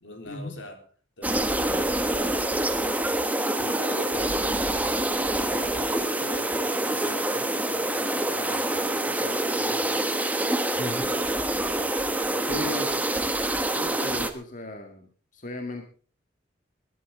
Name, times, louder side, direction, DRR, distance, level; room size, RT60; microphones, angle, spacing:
voice 1, 0.0-0.8 1.2-2.5 3.5-10.1 12.3-13.0, left 2 dB, 80° left, 5 dB, 3.8 m, -42 dB
sound 1, 1.2-14.3, right 1 dB, 10° right, 1.2 m, -26 dB
voice 2, 10.8-11.1 12.5-12.9 13.8-15.9, left 1 dB, 45° left, 5 dB, 1.9 m, -35 dB
22.0 x 12.0 x 3.7 m, 0.39 s
head